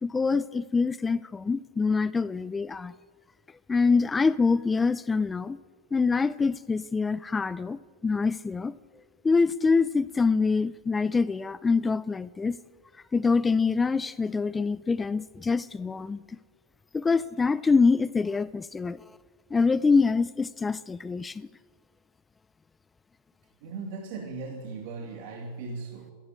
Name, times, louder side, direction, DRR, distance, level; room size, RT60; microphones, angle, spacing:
voice 1, 0.0-2.9 3.7-5.6 5.9-8.7 9.2-12.6 13.1-16.2 16.9-19.0 19.5-21.5, left 4 dB, 15° left, 0.4 m, -25 dB
voice 2, 23.6-26.1, right 4 dB, 70° right, 2.8 m, -38 dB
13.0 x 12.5 x 8.6 m
supercardioid pair, 125°, 0 cm